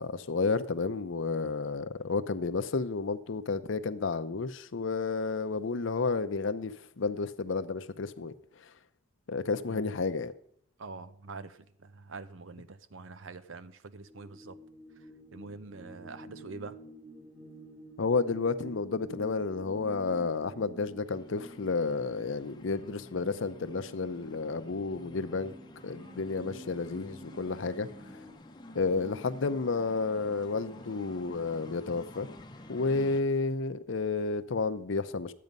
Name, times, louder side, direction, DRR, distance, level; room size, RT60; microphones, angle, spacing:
voice 1, 0.0-8.3 9.3-10.3 18.0-25.5 25.8-27.9 28.7-32.3 32.7-35.3, left 4 dB, 65° left, 0.6 m, -31 dB
voice 2, 9.7-10.0 10.8-14.6 15.0-16.8, right 4 dB, 70° right, 0.7 m, -45 dB
sound 1, 14.0-28.3, right 1 dB, 10° right, 1.3 m, -49 dB
sound 2, 21.0-33.2, left 1 dB, 20° left, 0.7 m, -51 dB
12.0 x 8.5 x 5.3 m
head